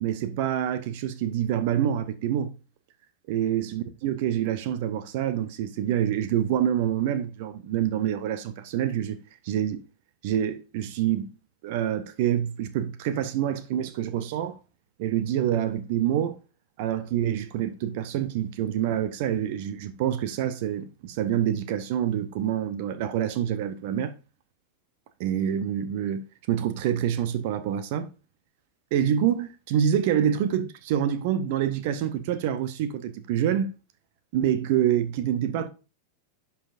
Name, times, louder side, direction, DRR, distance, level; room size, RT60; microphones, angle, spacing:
voice 1, 0.0-2.5 3.3-9.2 9.4-9.8 10.2-11.3 11.6-14.6 15.0-16.4 16.8-24.1 25.2-28.1 28.9-33.7 34.3-35.7, right 10 dB, 50° right, 0.8 m, -26 dB
11.0 x 5.8 x 2.5 m
figure-of-eight pair, 90°, 0 cm